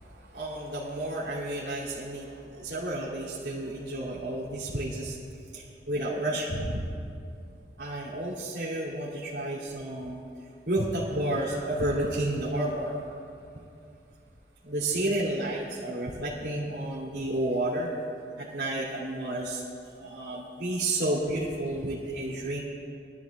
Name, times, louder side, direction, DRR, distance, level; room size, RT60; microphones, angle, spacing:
voice 1, 0.1-5.2 5.5-6.8 7.8-10.2 10.6-13.2 14.6-17.9 18.4-22.6, right 1 dB, 80° right, -10 dB, 2.8 m, -31 dB
22.5 x 13.0 x 2.4 m, 2.5 s
head